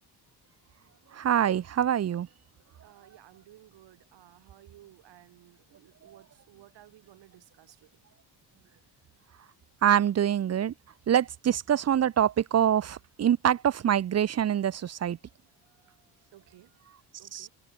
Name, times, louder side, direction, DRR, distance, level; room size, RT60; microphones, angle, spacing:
voice 1, 1.1-2.3 9.8-10.7 11.1-15.2 17.3-17.5, right 9 dB, 35° right, 0.9 m, -25 dB
voice 2, 2.8-8.0 15.5-17.5, right 15 dB, 85° right, 7.2 m, -57 dB
cardioid pair, 170°, 42 cm